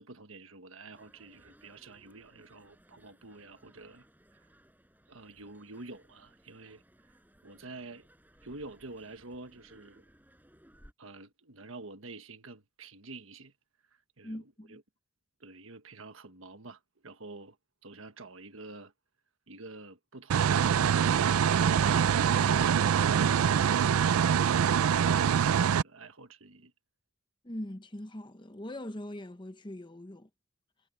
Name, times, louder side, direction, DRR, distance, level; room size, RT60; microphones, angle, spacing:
voice 1, 0.0-4.1 4.3-4.5 5.1-8.1 8.4-10.0 11.0-13.5 14.2-14.8 15.4-17.6 17.8-18.9 19.5-22.0 22.4-22.8 25.4-26.7, right 3 dB, 65° right, 1.5 m, -48 dB
sound 1, 0.9-10.9, equal, 10° right, 6.1 m, -62 dB
voice 2, 14.2-14.8 27.4-30.3, left 1 dB, 20° left, 1.0 m, -41 dB
sound 2, 20.3-25.8, right 8 dB, 80° right, 0.4 m, -24 dB
sound 3, 21.5-24.8, right 2 dB, 45° right, 3.6 m, -43 dB
head